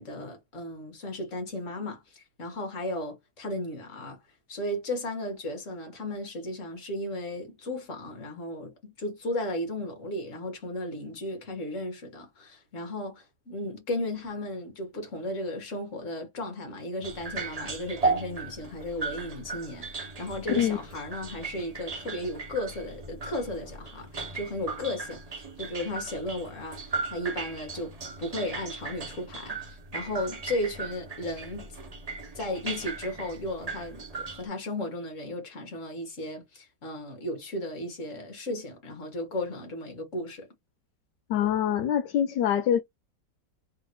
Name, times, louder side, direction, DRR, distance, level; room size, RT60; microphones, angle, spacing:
voice 1, 0.0-4.2 4.5-27.9 28.2-31.7 32.4-40.5, left 1 dB, 45° left, 1.9 m, -35 dB
sound 1, 17.0-34.5, right 4 dB, 40° right, 0.5 m, -36 dB
voice 2, 41.3-42.8, left 10 dB, 80° left, 1.2 m, -24 dB
3.7 x 3.4 x 3.1 m
omnidirectional pair, 1.9 m